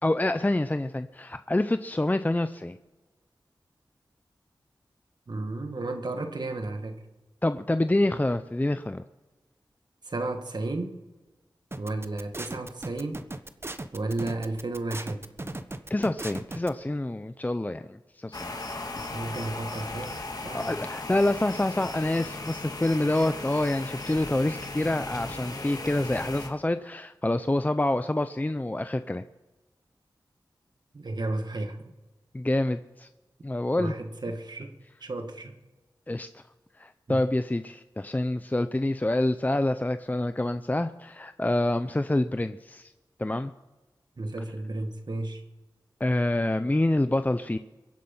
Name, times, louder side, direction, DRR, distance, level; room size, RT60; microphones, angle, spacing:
voice 1, 0.0-2.8 7.4-9.0 15.9-18.5 20.5-29.2 32.3-33.1 33.4-33.9 36.1-36.4 36.8-42.9 43.2-43.5 46.0-47.6, left 1 dB, 20° left, 10 dB, 0.6 m, -27 dB
voice 2, 5.3-7.0 10.0-11.0 11.8-13.2 13.9-15.2 19.1-20.7 30.9-31.9 33.8-34.8 35.0-35.6 37.1-37.2 44.2-45.4, right 2 dB, 60° right, 6 dB, 2.0 m, -33 dB
sound 1, 11.7-16.7, right 2 dB, 30° right, 1.1 m, -37 dB
sound 2, 18.3-26.5, left 2 dB, 50° left, 2.4 m, -37 dB
23.0 x 8.5 x 5.6 m, 1.1 s
cardioid pair, 40°, 8 cm